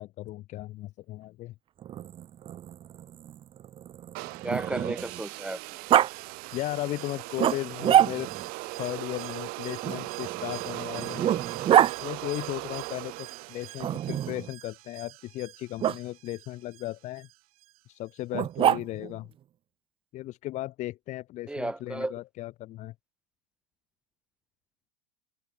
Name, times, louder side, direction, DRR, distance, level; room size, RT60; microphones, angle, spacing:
voice 1, 0.0-1.5 6.5-8.3 8.7-11.4 12.0-17.3 17.9-19.3 20.1-22.9, left 16 dB, 40° left, 1.2 m, -36 dB
Growling, 1.8-5.2 5.9-6.1 7.4-8.5 9.8-11.9 13.8-14.5 15.8-16.0 18.3-19.2, right 11 dB, 30° right, 1.1 m, -26 dB
sound 1, 4.1-14.3, right 29 dB, 50° right, 2.7 m, -39 dB
voice 2, 4.2-5.6 21.5-22.1, right 2 dB, 5° right, 1.2 m, -33 dB
Alarm, 4.7-18.2 18.5-18.6, right 17 dB, 70° right, 7.9 m, -49 dB
supercardioid pair, 125°, 19 cm